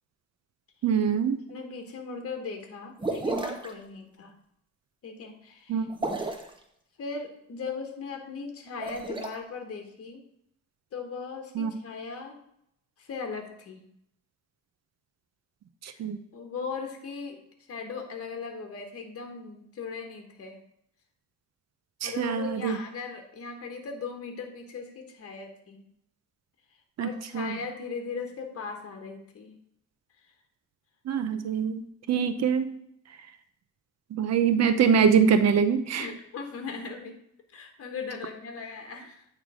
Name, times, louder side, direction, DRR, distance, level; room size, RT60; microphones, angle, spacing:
voice 1, 0.8-1.4 5.7-5.9 11.6-11.7 15.8-16.2 22.0-22.8 27.0-27.6 31.1-31.8 32.1-32.7 34.1-36.1, right 7 dB, 60° right, 10 dB, 0.7 m, -24 dB
voice 2, 1.5-4.3 5.0-5.9 7.0-10.2 10.9-12.4 13.0-13.8 15.8-16.0 16.3-17.4 17.7-20.6 22.0-25.8 27.0-29.6 30.2-30.3 35.9-37.2 37.5-39.3, left 5 dB, 50° left, 4 dB, 1.4 m, -38 dB
sound 1, 3.0-3.7 5.9-6.5 8.7-9.3, right 2 dB, 15° right, 1.0 m, -31 dB
9.1 x 3.3 x 4.9 m, 0.74 s
cardioid pair, 90°, 30 cm